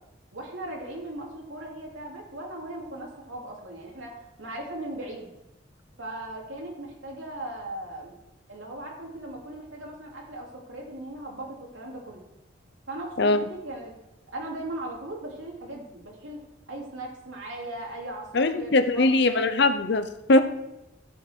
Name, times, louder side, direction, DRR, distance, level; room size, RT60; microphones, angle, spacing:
voice 1, 0.3-5.3 6.0-8.1 8.5-12.2 12.9-13.9 14.3-16.4 16.7-19.4, right 1 dB, 90° right, -1 dB, 2.9 m, -38 dB
voice 2, 13.2-13.5 18.3-20.4, left 2 dB, 60° left, 10 dB, 0.7 m, -21 dB
13.0 x 7.3 x 4.6 m, 0.91 s
head